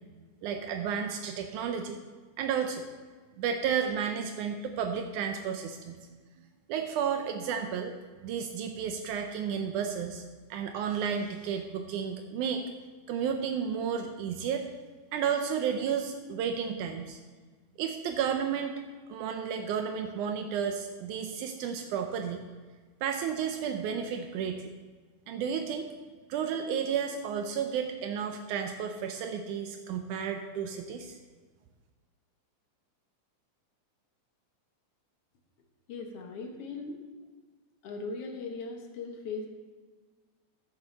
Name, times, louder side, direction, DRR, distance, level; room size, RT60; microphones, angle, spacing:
voice 1, 0.4-2.0 2.4-2.9 3.4-6.0 6.7-7.9 8.2-10.2 10.5-12.6 13.1-14.7 15.1-17.2 17.8-18.7 19.1-22.4 23.0-24.7 25.3-25.9 26.3-31.2, right 7 dB, 80° right, 5 dB, 2.1 m, -32 dB
voice 2, 35.9-37.0 37.8-39.5, left 4 dB, 60° left, 3 dB, 1.8 m, -38 dB
13.0 x 7.0 x 4.1 m, 1.4 s
omnidirectional pair, 3.6 m